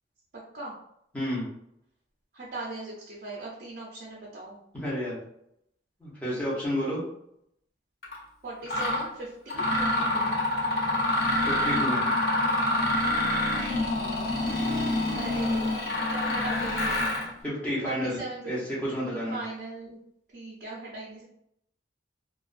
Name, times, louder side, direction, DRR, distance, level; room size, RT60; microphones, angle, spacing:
voice 1, 1.1-1.4 4.7-5.2 6.0-7.0 11.5-12.0 17.4-18.2 18.5-19.4, equal, 10° left, -8 dB, 0.9 m, -30 dB
voice 2, 2.3-4.6 8.4-10.3 15.1-15.7 16.1-17.0 17.3-17.4 17.8-18.5 18.9-20.0 20.3-21.2, right 2 dB, 50° right, -6 dB, 0.5 m, -39 dB
Mechanisms, 8.0-8.2 8.7-9.0 9.5-17.3, left 1 dB, 55° left, 0.7 m, -26 dB
2.4 x 2.3 x 2.4 m, 0.75 s
head